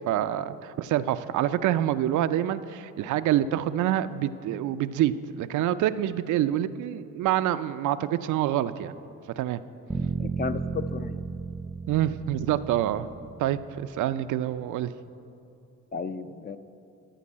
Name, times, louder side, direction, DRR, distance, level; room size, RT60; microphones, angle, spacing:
voice 1, 0.1-8.9 9.4-9.6 11.9-13.1 13.4-14.9, right 12 dB, 75° right, 12 dB, 0.5 m, -26 dB
sound 1, 9.9-14.0, right 4 dB, 10° right, 0.6 m, -34 dB
voice 2, 10.2-11.4 15.9-16.6, left 5 dB, 30° left, 11 dB, 0.5 m, -34 dB
14.0 x 5.3 x 8.5 m, 2.7 s
cardioid pair, 90°, 30 cm